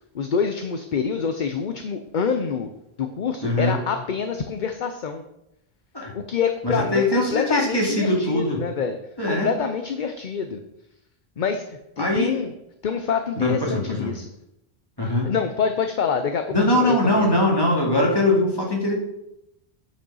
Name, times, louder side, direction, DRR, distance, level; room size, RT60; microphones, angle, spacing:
voice 1, 0.1-2.7 3.0-5.2 6.1-9.0 9.3-10.6 11.4-12.5 12.8-14.2 15.3-17.3, left 6 dB, 55° left, 7 dB, 0.8 m, -26 dB
voice 2, 3.4-3.8 5.9-6.1 6.6-8.6 9.2-9.5 12.0-12.4 13.4-14.1 15.0-15.3 16.5-18.9, left 1 dB, 25° left, -2 dB, 2.4 m, -21 dB
9.8 x 5.3 x 5.5 m, 0.84 s
omnidirectional pair, 1.0 m